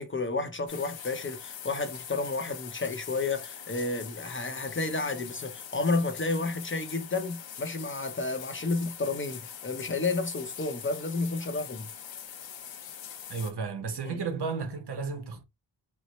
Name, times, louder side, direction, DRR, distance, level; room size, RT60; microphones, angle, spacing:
voice 1, 0.0-11.9 14.0-14.2, left 3 dB, 25° left, 0.7 m, -31 dB
sound 1, 0.7-13.5, left 8 dB, 85° left, 0.8 m, -43 dB
voice 2, 13.3-15.4, right 4 dB, 65° right, 0.9 m, -33 dB
4.4 x 2.0 x 3.0 m
cardioid pair, 75°, 44 cm